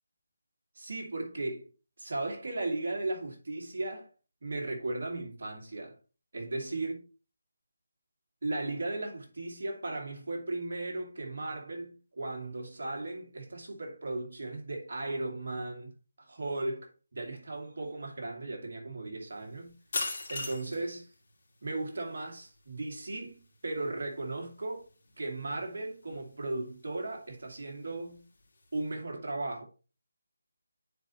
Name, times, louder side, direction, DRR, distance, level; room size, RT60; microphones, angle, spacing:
voice 1, 0.8-1.7 2.0-4.1 4.4-6.0 6.3-7.0 8.4-19.8 20.2-21.1 21.6-24.9 25.2-28.2 28.7-29.6, right 2 dB, 60° right, 2.4 m, -36 dB
sound 1, 19.3-29.0, left 3 dB, 50° left, 2.5 m, -43 dB
9.5 x 4.3 x 3.1 m
figure-of-eight pair, 160°, 0 cm